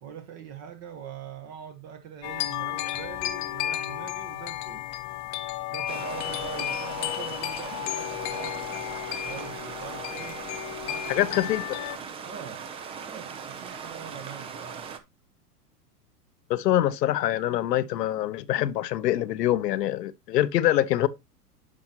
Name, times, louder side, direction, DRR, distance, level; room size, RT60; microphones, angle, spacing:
voice 1, 0.0-4.9 5.7-8.6 9.2-10.4 10.9-11.5 12.2-12.7 13.1-15.0, right 8 dB, 30° right, 1.1 m, -42 dB
sound 1, 2.2-12.0, left 14 dB, 35° left, 0.7 m, -33 dB
Stream, 5.9-15.0, right 6 dB, 15° right, 0.4 m, -39 dB
voice 2, 11.1-11.6 16.5-21.1, left 13 dB, 80° left, 0.8 m, -24 dB
10.0 x 5.8 x 2.8 m
hypercardioid pair, 125°, 48 cm